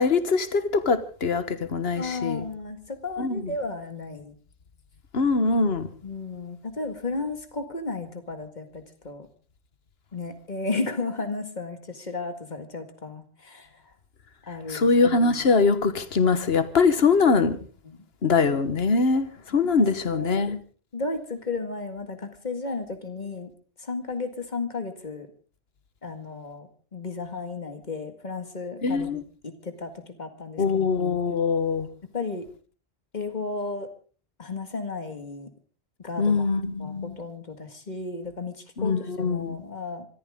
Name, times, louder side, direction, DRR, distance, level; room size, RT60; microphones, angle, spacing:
voice 1, 0.0-2.4 3.2-3.5 5.1-5.9 14.7-17.7 18.2-19.3 19.5-20.6 28.8-29.2 30.6-31.9 36.2-37.2 38.8-39.6, left 4 dB, 75° left, 1.6 m, -23 dB
voice 2, 2.0-4.4 6.0-9.3 10.1-13.9 14.5-14.9 17.8-18.0 20.1-20.6 20.9-23.5 23.8-25.3 26.0-30.6 32.1-32.5 33.1-33.9 34.4-35.5 36.0-36.5 36.8-40.1, left 3 dB, 45° left, 2.1 m, -34 dB
26.5 x 14.0 x 3.7 m
omnidirectional pair, 1.0 m